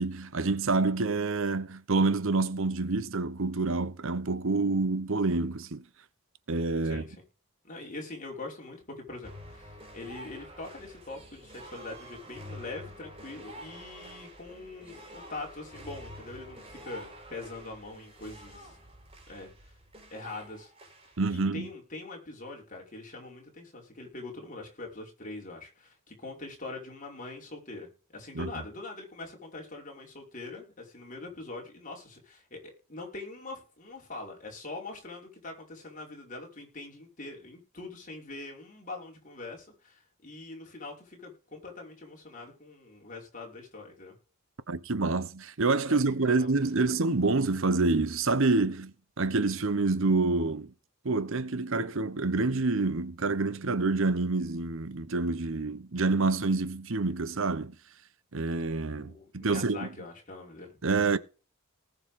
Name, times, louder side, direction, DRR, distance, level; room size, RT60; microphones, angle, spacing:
voice 1, 0.0-5.8 6.5-7.0 21.2-21.7 28.3-28.5 44.7-50.7 51.0-57.8 58.3-59.9 60.8-61.2, right 3 dB, 60° right, 0.9 m, -27 dB
voice 2, 6.8-7.2 7.6-18.8 19.3-19.7 20.1-20.7 21.3-44.2 45.9-46.9 59.0-60.8, left 2 dB, 35° left, 5.5 m, -43 dB
sound 1, 9.2-21.2, equal, 25° right, 5.1 m, -48 dB
19.0 x 7.1 x 3.7 m
head